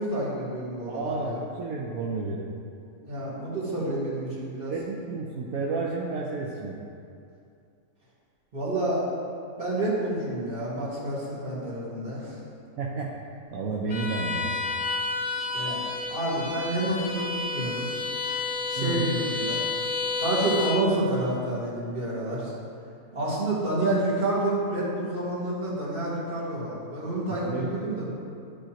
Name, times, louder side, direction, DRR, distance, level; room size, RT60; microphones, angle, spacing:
voice 1, 0.0-1.4 3.0-4.7 8.5-9.0 9.6-12.4 15.5-17.9 18.7-19.6 20.2-22.5 23.1-28.1, right 1 dB, 40° right, -8 dB, 2.1 m, -29 dB
voice 2, 0.9-2.5 4.7-6.8 12.8-14.6 18.8-19.1 27.3-27.7, right 4 dB, 75° right, -2 dB, 1.1 m, -31 dB
Bowed string instrument, 13.9-20.9, left 3 dB, 35° left, 0.7 m, -30 dB
12.5 x 5.0 x 2.9 m, 2.5 s
omnidirectional pair, 1.5 m